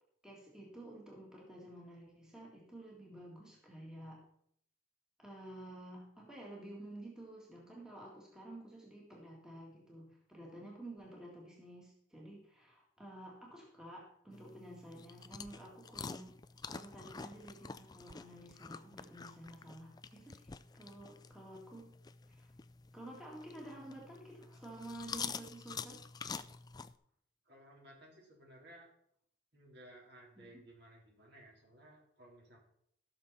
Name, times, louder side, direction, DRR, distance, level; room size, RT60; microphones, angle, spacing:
voice 1, 0.2-4.2 5.2-16.3 16.6-21.9 22.3-22.5 22.9-26.0 30.4-30.6, right 1 dB, 5° right, -3 dB, 1.9 m, -51 dB
sound 1, 14.3-26.9, left 5 dB, 20° left, 0.3 m, -48 dB
voice 2, 27.5-28.9 29.5-32.6, right 1 dB, 55° right, -3 dB, 4.0 m, -58 dB
15.5 x 6.6 x 4.2 m, 0.69 s
head